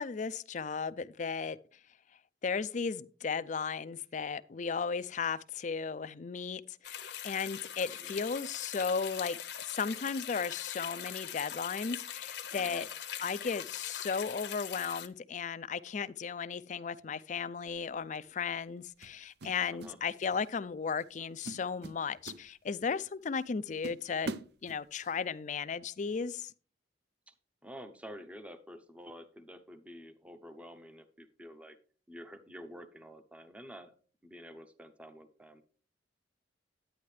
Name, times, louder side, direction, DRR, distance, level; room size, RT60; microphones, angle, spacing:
voice 1, 0.0-1.6 2.4-12.9 13.2-24.3 24.6-26.5, left 5 dB, 40° left, 0.4 m, -35 dB
sound 1, 6.8-15.1, left 10 dB, 60° left, 0.8 m, -42 dB
voice 2, 12.5-12.9 19.7-20.0 27.3-27.4 27.6-31.8 32.1-33.9 34.2-35.6, equal, 5° right, 0.7 m, -49 dB
sound 2, 17.7-17.9 19.0-20.0 20.2-20.5 21.0-21.2 21.4-23.0 23.4-23.5 23.8-25.2, right 2 dB, 60° right, 0.5 m, -43 dB
10.0 x 9.4 x 3.3 m
head